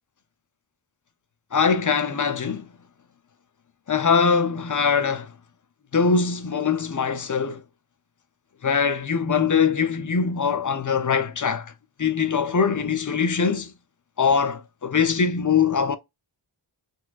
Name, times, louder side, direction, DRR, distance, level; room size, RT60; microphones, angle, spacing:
voice 1, 1.5-2.7 3.9-5.3 5.9-7.6 8.6-11.7 12.0-13.7 14.2-16.0, left 6 dB, 40° left, 0.5 m, -22 dB
4.1 x 2.3 x 2.4 m
wide cardioid pair, 45°, 47 cm